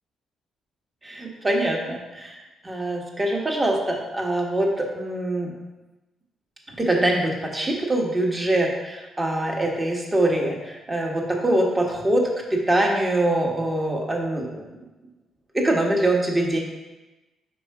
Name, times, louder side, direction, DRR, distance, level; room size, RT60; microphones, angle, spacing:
voice 1, 1.0-2.4 2.6-5.5 6.8-14.8 15.5-16.6, right 1 dB, 20° right, 0 dB, 1.3 m, -24 dB
5.3 x 4.5 x 4.7 m, 1.1 s
cardioid pair, 90°, 0 cm